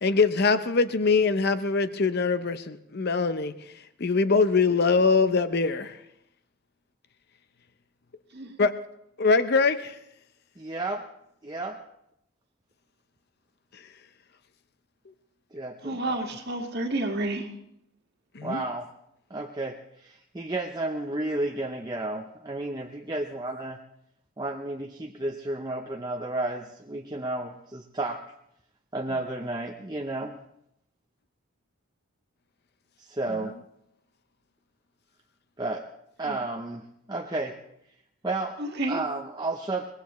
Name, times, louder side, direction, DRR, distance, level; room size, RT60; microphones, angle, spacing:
voice 1, 0.0-3.5 4.0-6.0 8.6-8.7 9.2-10.0 18.3-18.6, left 4 dB, 50° left, 11 dB, 0.7 m, -23 dB
voice 2, 10.6-11.1 11.4-11.8 15.5-16.2 18.4-18.9 19.3-23.8 24.4-28.3 28.9-30.4 33.0-33.5 35.6-35.9 36.2-37.6 38.2-38.6 38.9-39.9, right 2 dB, 20° right, 2 dB, 0.6 m, -32 dB
voice 3, 15.8-17.5 36.3-36.4 38.6-39.0, right 2 dB, 50° right, 3 dB, 1.8 m, -30 dB
23.0 x 19.5 x 3.1 m, 0.79 s
head